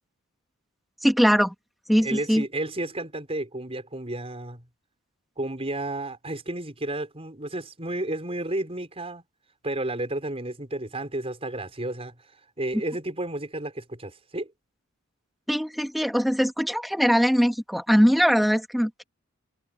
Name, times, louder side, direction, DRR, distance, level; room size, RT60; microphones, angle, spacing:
voice 1, 1.0-1.5 1.9-2.4 15.5-19.0, equal, ahead, 1.6 m, -21 dB
voice 2, 2.0-4.6 5.4-9.2 9.6-12.1 12.6-14.5, right 1 dB, 30° right, 5.2 m, -32 dB
head